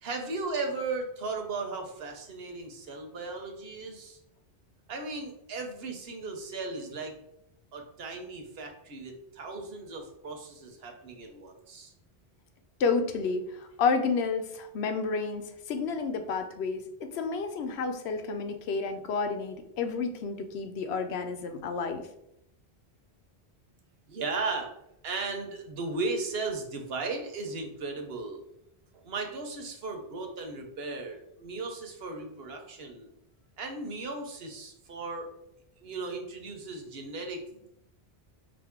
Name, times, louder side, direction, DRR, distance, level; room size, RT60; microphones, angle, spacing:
voice 1, 0.0-4.2 4.9-7.2 7.7-11.9 24.1-24.7 25.0-28.4 29.0-33.1 33.6-35.3 35.8-37.7, right 3 dB, 70° right, 4 dB, 1.0 m, -36 dB
voice 2, 12.8-22.0, left 4 dB, 85° left, 7 dB, 0.9 m, -30 dB
5.0 x 2.6 x 3.6 m, 0.80 s
omnidirectional pair, 1.1 m